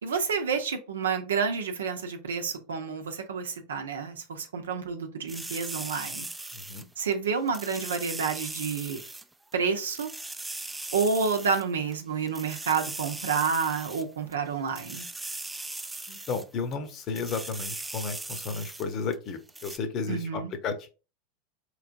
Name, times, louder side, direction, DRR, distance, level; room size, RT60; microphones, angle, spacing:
voice 1, 0.0-6.3 7.0-9.0 9.5-10.1 10.9-15.1 20.1-20.5, right 5 dB, 80° right, 0.8 m, -29 dB
sound 1, 5.3-7.1 7.5-9.2 9.5-9.6 9.9-11.6 11.9-12.0 12.3-14.3 14.7-16.4 16.7-16.8 17.1-18.9 19.1-19.2 19.5-19.8, right 2 dB, 10° right, 0.4 m, -39 dB
voice 2, 6.5-6.9 16.1-20.9, left 4 dB, 45° left, 0.8 m, -33 dB
4.7 x 3.2 x 2.5 m
hypercardioid pair, 95°, 0 cm